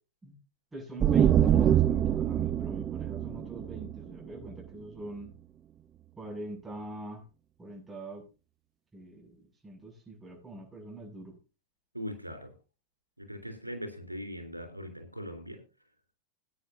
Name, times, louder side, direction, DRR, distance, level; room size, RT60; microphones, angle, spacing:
voice 1, 0.7-5.3 6.2-7.2 7.6-8.2 8.9-9.4 9.6-11.3, right 2 dB, 10° right, -1 dB, 7.0 m, -42 dB
sound 1, 1.0-4.6, right 10 dB, 25° right, 0.5 m, -25 dB
voice 2, 11.9-12.5 13.2-15.6, equal, 90° left, 5 dB, 3.5 m, -40 dB
21.0 x 9.2 x 2.8 m, 0.33 s
figure-of-eight pair, 90°, 0 cm